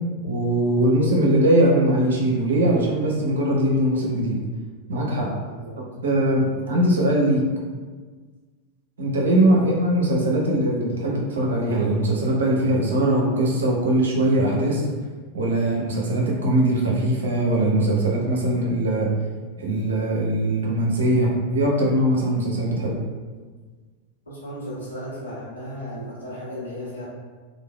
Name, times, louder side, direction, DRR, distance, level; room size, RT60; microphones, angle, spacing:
voice 1, 0.2-4.4 4.9-5.3 6.0-7.4 9.0-14.8 15.3-19.1 19.6-22.9, right 1 dB, 65° right, -2 dB, 0.6 m, -21 dB
voice 2, 24.2-27.1, left 1 dB, 75° left, -8 dB, 1.2 m, -35 dB
3.2 x 2.4 x 2.2 m, 1.4 s
figure-of-eight pair, 90°, 0 cm